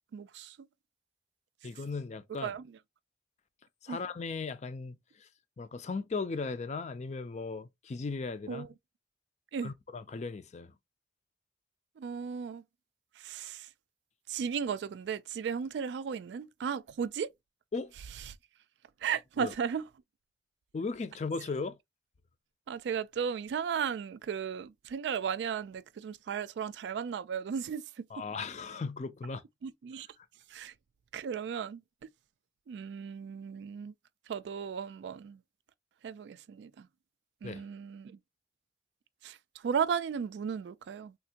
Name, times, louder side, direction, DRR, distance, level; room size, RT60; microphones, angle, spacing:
voice 1, 0.1-0.7 2.4-2.7 3.9-4.0 8.5-8.7 9.5-9.7 12.0-12.6 13.2-13.7 14.3-17.3 18.3-18.4 19.0-19.8 22.7-28.2 29.6-30.1 30.5-30.7 31.1-31.8 32.7-33.9 34.3-35.4 36.0-36.9 37.4-38.2 39.2-39.4 39.6-41.1, right 7 dB, 75° right, 0.3 m, -35 dB
voice 2, 1.6-2.5 3.8-5.3 5.6-8.7 9.6-10.7 17.7-17.9 19.4-19.5 20.7-21.8 28.1-29.4 37.4-37.6, left 4 dB, 40° left, 0.4 m, -37 dB
3.4 x 2.5 x 2.8 m
head